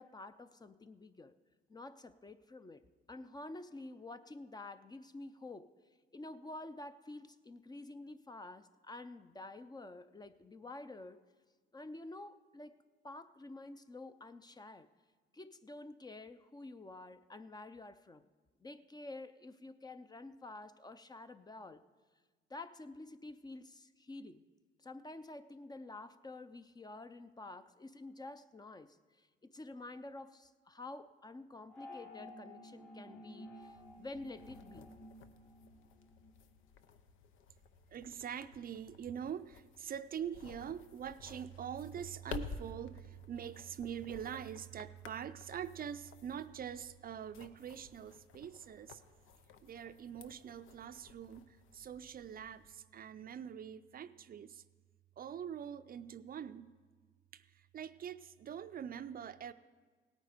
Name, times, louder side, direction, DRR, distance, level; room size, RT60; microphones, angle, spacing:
voice 1, 0.0-1.3 1.7-5.7 6.1-11.2 11.7-14.9 15.3-18.3 18.6-21.8 22.5-24.4 24.8-34.9, left 2 dB, 20° left, 11 dB, 0.5 m, -49 dB
sound 1, 31.7-36.3, left 1 dB, 60° left, 4.1 m, -53 dB
sound 2, 33.6-52.7, left 5 dB, 85° left, 0.7 m, -54 dB
voice 2, 37.9-49.0 49.6-51.5 51.7-54.6 55.2-56.7 57.3-57.4 57.7-59.5, right 8 dB, 45° right, 13 dB, 0.4 m, -44 dB
17.5 x 9.0 x 5.0 m, 1.4 s
cardioid pair, 90°, 20 cm